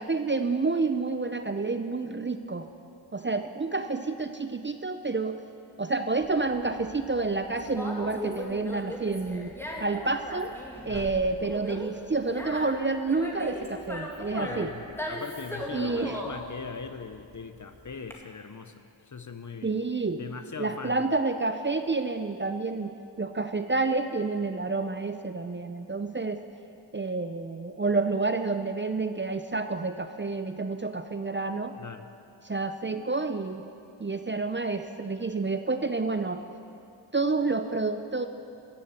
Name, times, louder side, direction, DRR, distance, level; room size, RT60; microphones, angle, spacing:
voice 1, 0.0-2.7 3.1-5.4 5.8-9.5 9.8-10.6 10.9-14.7 15.7-16.2 19.6-20.2 20.6-26.4 26.9-31.8 32.4-33.6 34.0-36.4 37.1-38.3, right 3 dB, 25° right, 8 dB, 0.6 m, -29 dB
Conversation, 6.2-18.1, left 1 dB, 5° left, 2.1 m, -38 dB
voice 2, 14.4-18.7 19.1-19.9 20.1-21.0 31.8-32.1, left 5 dB, 35° left, 9 dB, 0.9 m, -40 dB
14.5 x 7.1 x 8.2 m, 2.6 s
cardioid pair, 55°, 48 cm